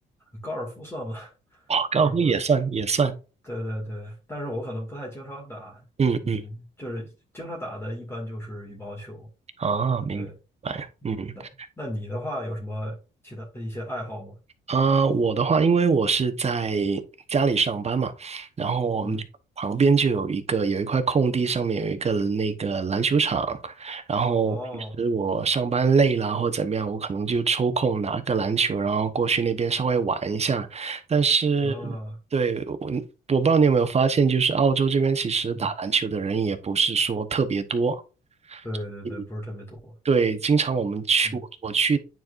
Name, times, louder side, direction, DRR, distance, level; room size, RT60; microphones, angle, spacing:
voice 1, 0.3-1.6 1.9-2.3 3.4-5.8 6.2-9.3 10.1-10.3 11.3-11.5 11.8-13.0 13.2-14.4 19.0-19.2 24.5-25.0 31.6-32.2 35.5-35.7 38.6-39.9 41.2-41.4, equal, 10° left, -3 dB, 2.3 m, -35 dB
voice 2, 1.7-3.1 6.0-6.4 9.6-10.3 10.6-11.3 14.7-17.0 17.3-19.2 19.6-32.0 32.3-33.0 33.3-38.0 38.5-38.6 39.0-39.1 40.0-42.0, right 5 dB, 35° right, 10 dB, 1.1 m, -23 dB
9.3 x 4.6 x 2.6 m, 0.32 s
cardioid pair, 90°, 20 cm